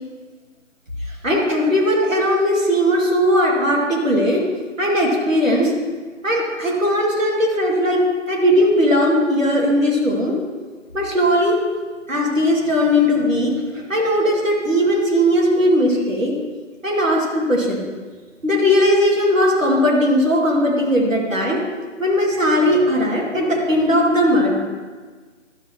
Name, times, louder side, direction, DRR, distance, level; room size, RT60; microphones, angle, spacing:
voice 1, 1.2-4.4 4.8-5.7 6.2-10.4 10.9-11.6 12.1-16.3 16.8-17.8 18.4-21.6 22.0-24.6, equal, 80° right, -2 dB, 2.4 m, -18 dB
12.0 x 7.9 x 3.0 m, 1.5 s
figure-of-eight pair, 155°, 39 cm